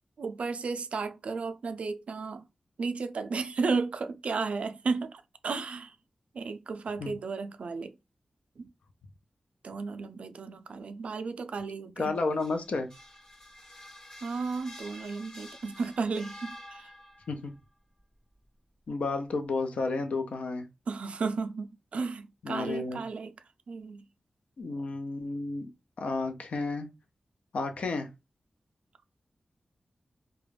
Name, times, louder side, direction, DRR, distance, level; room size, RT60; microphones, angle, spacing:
voice 1, 0.2-2.4 2.8-6.0 6.3-7.9 8.6-8.7 9.6-12.2 14.2-16.9 20.9-23.3 23.7-24.0, right 4 dB, 70° right, 0.3 m, -34 dB
voice 2, 12.0-12.9 17.3-17.5 18.9-20.7 22.4-23.0 24.6-25.7 26.0-26.9 27.5-28.1, left 3 dB, 80° left, 0.5 m, -31 dB
sound 1, 12.2-17.3, left 1 dB, 45° left, 1.1 m, -49 dB
2.3 x 2.1 x 3.2 m
cardioid pair, 60°, 2 cm